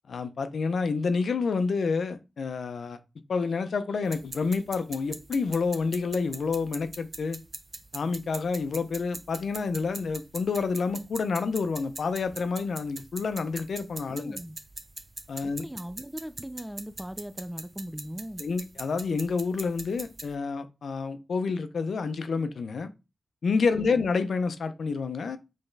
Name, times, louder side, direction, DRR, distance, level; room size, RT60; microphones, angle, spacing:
voice 1, 0.1-3.0 3.3-7.4 7.9-14.4 15.3-15.6 18.4-22.9 23.4-25.4, left 4 dB, 90° left, 0.5 m, -28 dB
sound 1, 4.0-20.3, right 2 dB, 40° right, 0.7 m, -43 dB
voice 2, 14.1-14.6 15.4-18.4 23.7-24.0, equal, 5° right, 0.3 m, -39 dB
4.3 x 3.4 x 3.2 m
wide cardioid pair, 95°, 0 cm